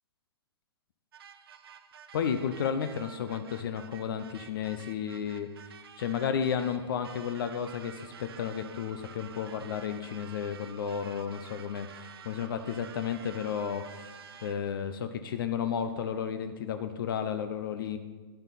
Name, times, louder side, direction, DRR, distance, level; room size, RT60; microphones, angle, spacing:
sound 1, 1.1-14.8, right 8 dB, 65° right, 0.8 m, -50 dB
voice 1, 2.1-5.5 6.0-18.0, left 7 dB, 55° left, 9 dB, 0.7 m, -33 dB
10.5 x 8.7 x 4.2 m, 1.4 s
hypercardioid pair, 125°, 14 cm